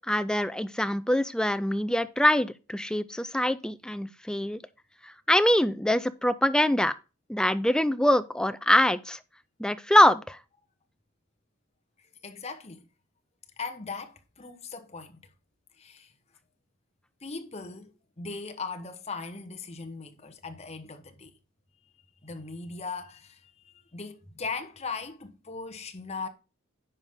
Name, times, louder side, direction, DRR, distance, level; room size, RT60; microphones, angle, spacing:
voice 1, 0.0-4.6 5.0-7.0 7.3-9.2 9.6-10.4, left 1 dB, 5° left, 0.4 m, -24 dB
voice 2, 12.0-12.9 13.6-15.3 15.8-16.1 17.2-21.4 22.2-26.3, left 4 dB, 30° left, 1.1 m, -39 dB
10.0 x 5.6 x 3.7 m
head